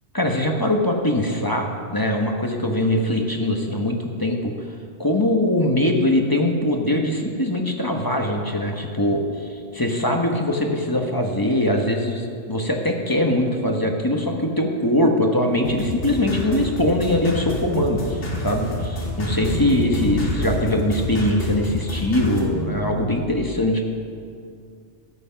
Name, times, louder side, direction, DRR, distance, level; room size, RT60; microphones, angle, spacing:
voice 1, 0.1-4.5 5.0-23.8, left 1 dB, 20° left, 2 dB, 0.9 m, -22 dB
sound 1, 15.7-22.4, left 1 dB, 70° left, 2.1 m, -29 dB
sound 2, 18.7-21.6 22.1-23.1, equal, 70° right, 1.7 m, -32 dB
13.0 x 8.1 x 5.7 m, 2.3 s
omnidirectional pair, 1.2 m